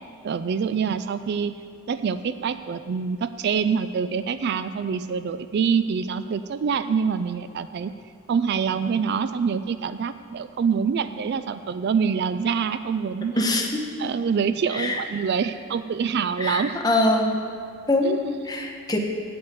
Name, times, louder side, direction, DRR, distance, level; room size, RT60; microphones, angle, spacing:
voice 1, 0.2-1.6 1.9-7.9 8.3-13.5 14.0-16.8 18.0-18.1, right 6 dB, 50° right, 12 dB, 0.3 m, -25 dB
voice 2, 13.4-13.7 14.7-15.0 16.4-17.3 17.9-18.2 18.4-19.0, left 1 dB, 20° left, 1 dB, 1.1 m, -23 dB
8.6 x 7.9 x 8.3 m, 2.2 s
head